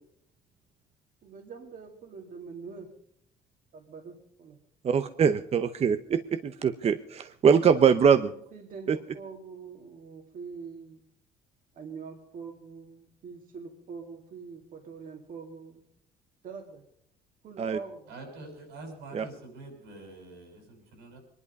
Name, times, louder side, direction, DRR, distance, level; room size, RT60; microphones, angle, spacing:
voice 1, 1.2-2.9 3.7-4.6 8.2-11.0 11.7-15.8 16.4-16.8 17.4-18.1, right 5 dB, 55° right, 2 dB, 2.1 m, -44 dB
voice 2, 4.8-8.3 8.9-9.0 17.6-17.8 19.1-19.2, right 7 dB, 40° right, 10 dB, 0.7 m, -23 dB
voice 3, 18.1-21.2, right 2 dB, 85° right, 3 dB, 6.6 m, -45 dB
22.5 x 11.0 x 5.3 m, 0.71 s
cardioid pair, 110°, 17 cm